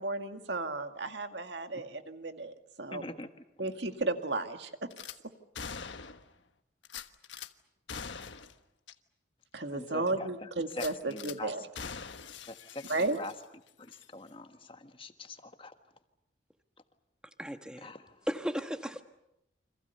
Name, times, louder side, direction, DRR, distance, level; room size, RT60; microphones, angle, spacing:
voice 1, 0.0-3.0 3.6-4.9 9.5-11.7 12.9-13.2, right 2 dB, 70° right, 2.0 m, -34 dB
voice 2, 2.9-3.3 9.7-11.5 11.8-11.9 12.5-13.3 13.8-15.7 17.8-18.1, left 2 dB, 30° left, 1.5 m, -44 dB
Gunshot gunfire / Glass, 4.9-5.2 5.5-6.3 6.8-7.5 7.9-8.5 8.9-9.0 9.4-9.5 10.7-11.4 11.7-13.5 13.9-14.1, left 6 dB, 85° left, 1.3 m, -43 dB
voice 3, 17.4-17.9 18.3-19.0, equal, 5° right, 1.4 m, -35 dB
29.5 x 26.0 x 6.8 m
head